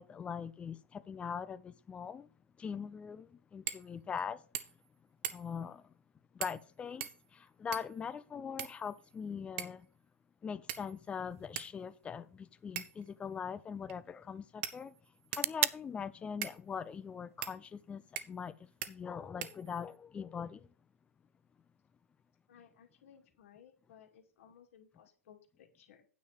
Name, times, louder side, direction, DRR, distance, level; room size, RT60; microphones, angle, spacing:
voice 1, 0.0-2.3 2.6-4.4 5.3-5.8 6.3-9.9 10.4-14.9 15.3-18.5 18.9-20.7, left 6 dB, 15° left, 0.5 m, -42 dB
sound 1, 3.7-3.9 4.2-4.3 4.5-4.9 5.2-5.6 6.4-6.7 7.0-8.0 8.6-9.2 9.6-9.9 10.7-11.1 11.6-11.7 12.8-13.1 13.9-14.0 14.6-15.6 16.4-16.6 17.4-17.6 18.2-18.5 18.8-18.9 19.4-20.0, right 12 dB, 45° right, 0.9 m, -42 dB
sound 2, 11.3-19.3, right 11 dB, 65° right, 0.4 m, -43 dB
voice 2, 22.5-26.1, left 8 dB, 60° left, 2.3 m, -60 dB
9.2 x 4.7 x 6.9 m
hypercardioid pair, 130°, 8 cm